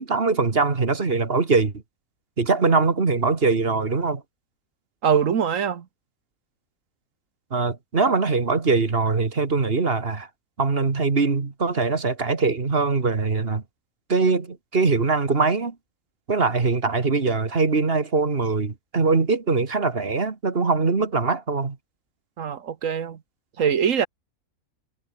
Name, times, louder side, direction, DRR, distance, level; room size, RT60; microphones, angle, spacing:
voice 1, 0.0-1.7 2.4-4.2 7.5-10.3 10.6-13.6 14.1-15.8 16.3-21.8, right 4 dB, 40° right, 2.1 m, -22 dB
voice 2, 5.0-5.8 22.4-23.2 23.6-24.1, right 7 dB, 65° right, 1.5 m, -22 dB
omnidirectional pair, 1.5 m